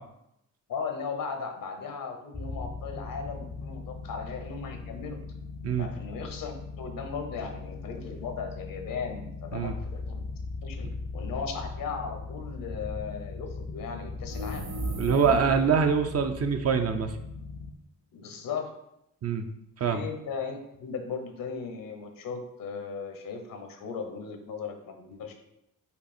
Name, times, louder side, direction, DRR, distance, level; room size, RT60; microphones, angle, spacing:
voice 1, 0.7-5.2 5.8-10.2 10.6-10.9 11.1-14.7 15.1-15.5 18.1-18.7 19.8-25.3, left 5 dB, 75° left, 5 dB, 0.8 m, -37 dB
sound 1, 2.3-17.7, left 3 dB, 20° left, 0.4 m, -39 dB
sound 2, 14.2-15.7, right 1 dB, 85° right, 0.8 m, -36 dB
voice 2, 15.0-17.1 19.2-19.5 19.8-20.1, right 6 dB, 45° right, 7 dB, 0.5 m, -24 dB
5.3 x 2.4 x 4.3 m, 0.81 s
cardioid pair, 80°, 34 cm